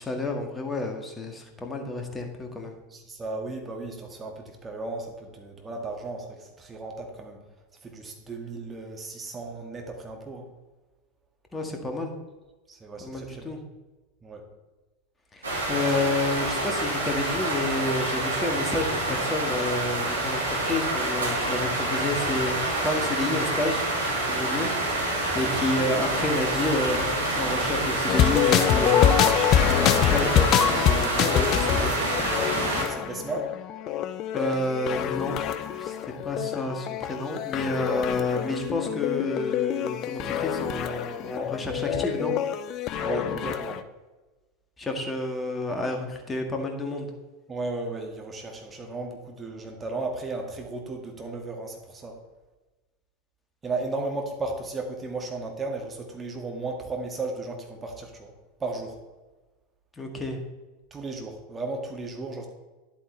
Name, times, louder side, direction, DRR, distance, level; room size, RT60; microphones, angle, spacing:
voice 1, 0.0-2.8 11.5-12.1 13.0-13.6 15.3-22.6 22.8-23.8 24.2-31.9 34.3-35.4 35.8-42.3 44.8-47.1 60.0-60.4, left 2 dB, 15° left, 3 dB, 1.9 m, -30 dB
voice 2, 2.9-7.4 7.8-10.5 12.7-13.6 14.2-14.5 15.7-15.8 32.6-33.5 43.0-43.8 47.5-52.2 53.6-58.3 58.6-59.0 60.9-62.5, right 3 dB, 20° right, 2 dB, 2.0 m, -35 dB
sound 1, 15.4-32.8, right 2 dB, 80° right, 3.0 m, -27 dB
sound 2, 28.1-43.8, left 10 dB, 40° left, 0.6 m, -26 dB
11.0 x 8.4 x 3.4 m, 1.2 s
figure-of-eight pair, 85°, 0 cm